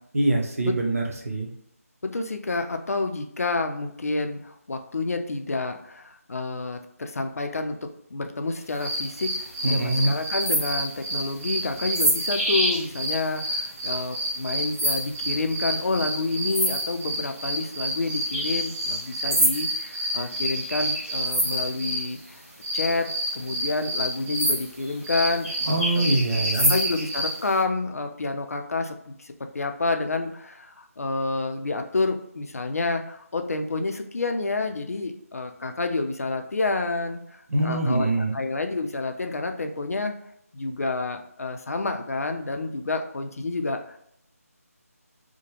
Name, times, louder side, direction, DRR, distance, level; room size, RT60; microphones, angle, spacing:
voice 1, 0.1-1.5 9.6-10.1 25.7-26.7 37.5-38.4, right 2 dB, 65° right, 1 dB, 0.8 m, -24 dB
voice 2, 2.0-7.8 8.1-22.4 22.7-25.7 26.0-26.1 26.5-40.1 40.5-44.0, left 3 dB, 70° left, 6 dB, 0.4 m, -29 dB
sound 1, 8.8-22.1 22.6-27.4, right 1 dB, 10° right, 0.8 m, -27 dB
2.9 x 2.1 x 2.9 m, 0.72 s
figure-of-eight pair, 160°, 8 cm